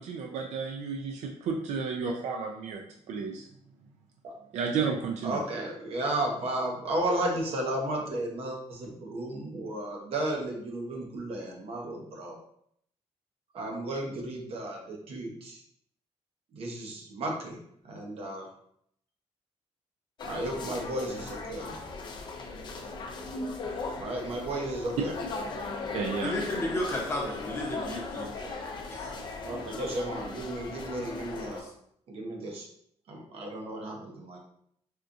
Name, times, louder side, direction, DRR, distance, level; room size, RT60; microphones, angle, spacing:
voice 1, 0.0-2.8 3.1-3.5 4.5-5.4 25.9-26.3, right 5 dB, 75° right, 2 dB, 0.4 m, -32 dB
voice 2, 5.2-12.4 13.5-15.6 16.5-17.6 17.8-18.5 20.2-21.8 24.0-25.2 29.4-31.7 32.1-32.7 33.1-34.4, right 1 dB, 60° right, 0 dB, 0.8 m, -33 dB
sound 1, 20.2-31.6, left 3 dB, 40° left, 0.4 m, -38 dB
voice 3, 26.2-28.3 28.9-29.1 31.6-31.7, left 1 dB, 20° left, -3 dB, 0.8 m, -32 dB
4.3 x 2.3 x 2.6 m, 0.68 s
wide cardioid pair, 175°, 12 cm